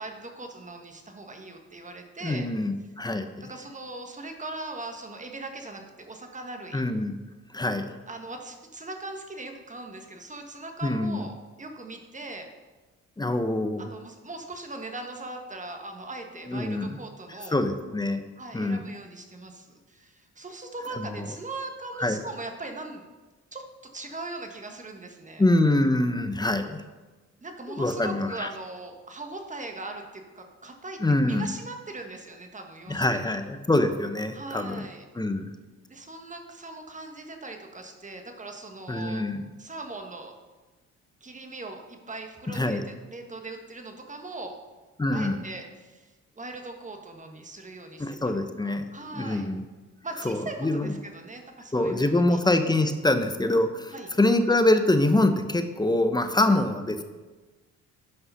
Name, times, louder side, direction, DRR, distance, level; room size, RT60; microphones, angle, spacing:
voice 1, 0.0-2.5 3.5-6.8 8.1-12.5 13.8-17.6 18.4-23.1 23.5-23.6 23.9-25.4 27.4-33.2 34.3-35.1 35.9-39.2 39.6-40.3 41.2-44.5 45.1-48.4 48.6-49.5 50.0-52.4 53.9-54.1 56.5-56.6, right 2 dB, 25° right, 4 dB, 1.4 m, -40 dB
voice 2, 2.2-3.5 6.7-7.2 7.5-7.9 10.8-11.2 13.2-13.8 16.5-17.0 17.5-18.2 18.5-18.8 21.0-21.1 22.0-22.2 25.4-26.8 27.7-28.5 31.0-31.5 32.9-34.8 35.2-35.5 38.9-39.4 42.5-42.8 45.0-45.4 48.0-48.9 49.1-49.6 50.2-50.9 51.7-57.0, left 2 dB, 15° left, 8 dB, 0.8 m, -25 dB
9.7 x 5.5 x 5.7 m, 1.3 s
cardioid pair, 90°, 30 cm